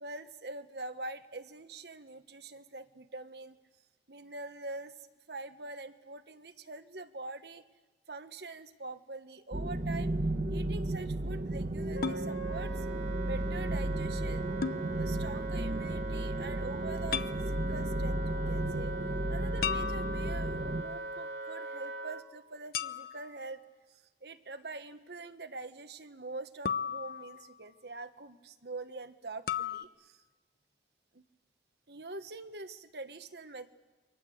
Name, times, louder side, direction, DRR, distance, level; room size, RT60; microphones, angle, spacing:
voice 1, 0.0-3.6 4.1-4.9 5.3-7.6 8.1-10.1 10.5-12.9 13.2-14.4 14.9-18.9 19.3-23.6 23.9-30.2 31.1-31.2 31.9-33.7, right 3 dB, 65° right, 9 dB, 1.3 m, -44 dB
sound 1, 9.5-20.8, right 1 dB, 45° right, 1.0 m, -34 dB
Wind instrument woodwind instrument, 11.9-22.2, right 3 dB, 90° right, 2.7 m, -40 dB
sound 2, 12.0-12.3 14.6-14.8 17.1-17.4 19.6-20.5 22.7-23.4 26.7-27.6 29.5-29.8, left 7 dB, 55° left, 0.8 m, -35 dB
28.0 x 24.0 x 7.8 m, 1.2 s
head